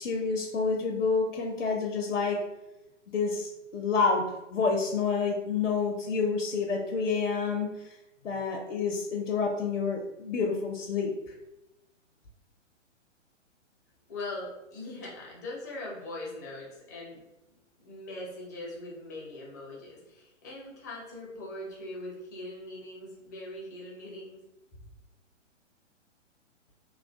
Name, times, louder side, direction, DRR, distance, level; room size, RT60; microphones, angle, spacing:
voice 1, 0.0-2.4 3.1-8.0 8.2-11.3, left 4 dB, 70° left, 1 dB, 0.5 m, -29 dB
voice 2, 14.1-17.2 17.8-24.4, left 2 dB, 15° left, -4 dB, 0.4 m, -41 dB
3.1 x 2.3 x 2.2 m, 0.96 s
figure-of-eight pair, 120°, 38 cm